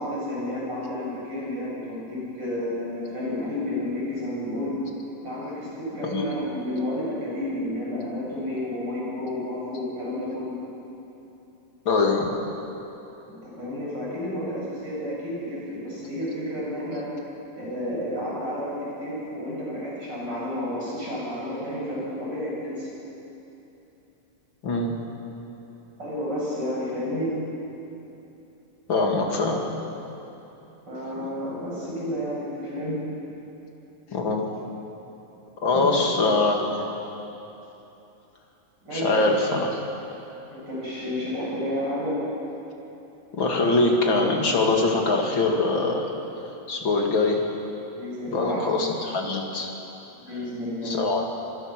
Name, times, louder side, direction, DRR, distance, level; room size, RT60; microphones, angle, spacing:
voice 1, 0.0-4.8 5.2-10.5 13.3-17.1 17.6-22.9 26.0-27.3 30.9-33.0 35.7-35.9 38.8-39.2 40.5-42.2 47.9-48.9 50.2-51.0, left 1 dB, 30° right, -6 dB, 8.4 m, -31 dB
voice 2, 11.8-12.3 24.6-24.9 28.9-29.6 34.1-34.5 35.6-36.9 38.9-39.8 43.3-46.1 46.7-47.4 48.3-49.7 50.8-51.2, left 3 dB, 35° left, 0 dB, 3.0 m, -23 dB
26.5 x 21.5 x 6.3 m, 3.0 s
omnidirectional pair, 4.0 m